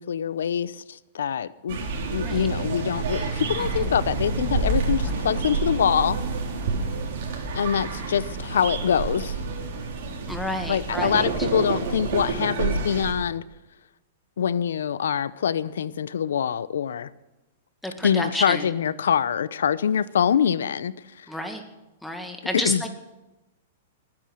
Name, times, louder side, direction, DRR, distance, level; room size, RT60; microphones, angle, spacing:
voice 1, 0.0-6.2 7.5-9.4 10.7-13.4 14.4-17.1 18.0-21.3 22.6-22.8, left 8 dB, 85° left, 18 dB, 0.7 m, -25 dB
sound 1, 1.7-13.1, right 4 dB, 60° right, 4.0 m, -28 dB
voice 2, 10.3-11.3 12.3-12.4 17.8-18.7 21.3-21.6 22.0-22.9, left 1 dB, 5° left, 4 dB, 1.9 m, -30 dB
20.0 x 9.7 x 6.4 m, 1.0 s
hypercardioid pair, 140°, 0 cm